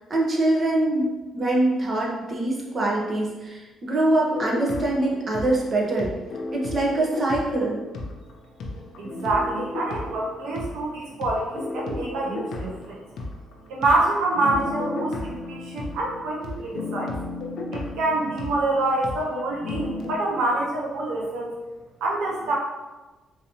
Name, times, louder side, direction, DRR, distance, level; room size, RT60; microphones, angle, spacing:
voice 1, 0.1-6.1 6.5-7.8, right 2 dB, 40° right, -3 dB, 0.9 m, -24 dB
sound 1, 4.3-8.3 8.6-20.2, left 2 dB, 75° left, 0.6 m, -34 dB
voice 2, 9.0-13.0 13.7-17.1 17.7-21.5 22.0-22.6, right 2 dB, 90° right, -3 dB, 0.6 m, -26 dB
3.9 x 2.8 x 2.9 m, 1.2 s
cardioid pair, 90°, 0 cm